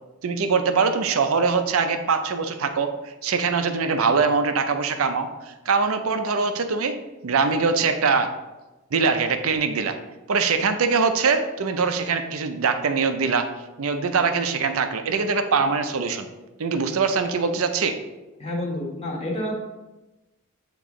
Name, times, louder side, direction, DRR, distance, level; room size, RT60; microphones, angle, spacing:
voice 1, 0.2-2.9 3.2-5.3 5.7-8.3 8.9-10.0 10.3-13.5 13.8-16.3 16.6-18.0, right 5 dB, 70° right, 8 dB, 0.5 m, -22 dB
voice 2, 18.4-19.6, left 1 dB, 30° left, -2 dB, 1.2 m, -29 dB
8.4 x 3.0 x 3.7 m, 1.1 s
head